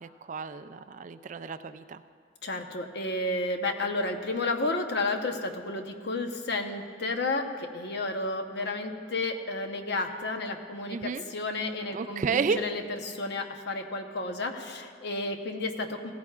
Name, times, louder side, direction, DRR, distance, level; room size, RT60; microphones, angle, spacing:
voice 1, 0.0-2.0 10.9-11.2 11.9-12.6, right 5 dB, 40° right, 11 dB, 0.3 m, -31 dB
voice 2, 2.4-16.1, left 2 dB, 60° left, 5 dB, 0.9 m, -32 dB
17.5 x 15.5 x 2.4 m, 2.1 s
head